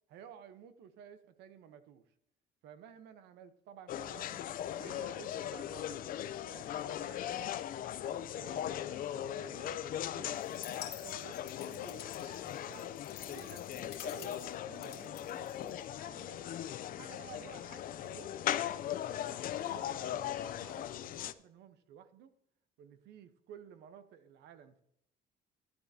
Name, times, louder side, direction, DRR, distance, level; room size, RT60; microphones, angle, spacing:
voice 1, 0.1-2.1 2.6-4.4 4.8-6.0 6.4-7.5 8.0-10.4 10.8-12.9 13.3-16.4 16.8-18.8 19.5-22.3 22.8-24.8, right 8 dB, 85° right, 11 dB, 0.9 m, -54 dB
sound 1, 3.9-21.3, left 11 dB, 55° left, 0.5 m, -39 dB
sound 2, 10.3-16.1, left 10 dB, 75° left, 2.0 m, -51 dB
12.0 x 9.8 x 2.8 m, 0.75 s
cardioid pair, 110°, 17 cm